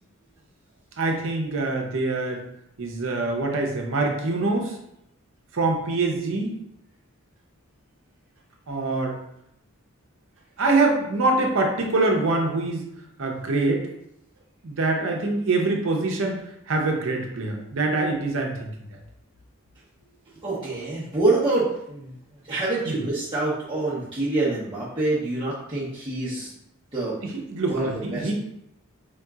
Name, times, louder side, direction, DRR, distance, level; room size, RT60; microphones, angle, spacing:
voice 1, 1.0-2.4 2.8-4.8 5.5-6.5 8.7-9.2 10.6-12.9 13.2-13.9 14.6-16.4 16.7-18.7 22.9-23.0 27.2-28.3, right 3 dB, 65° right, 1 dB, 0.7 m, -24 dB
voice 2, 20.4-22.2 22.5-26.5 26.9-27.2 27.7-28.3, right 2 dB, 25° right, -10 dB, 0.7 m, -26 dB
4.5 x 2.8 x 2.3 m, 0.78 s
head